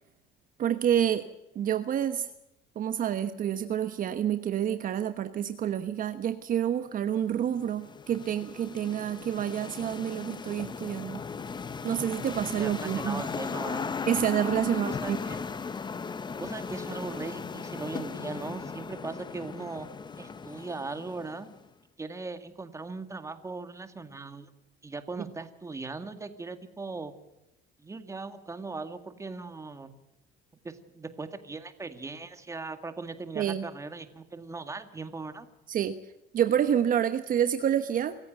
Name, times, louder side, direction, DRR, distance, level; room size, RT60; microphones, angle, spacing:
voice 1, 0.6-1.3 1.5-2.3 2.7-11.2 11.8-13.2 14.1-15.2 25.2-25.3 33.3-33.7 35.7-36.0 36.3-38.2, right 10 dB, 45° right, 10 dB, 1.1 m, -28 dB
sound 1, 7.1-21.6, left 5 dB, 20° left, 0.9 m, -37 dB
voice 2, 12.6-13.9 14.6-15.4 16.4-19.9 20.2-21.5 22.0-24.5 24.8-27.1 27.8-29.9 30.6-35.5, right 3 dB, 15° right, 9 dB, 2.0 m, -39 dB
25.5 x 14.5 x 7.9 m, 0.93 s
cardioid pair, 130°, 20 cm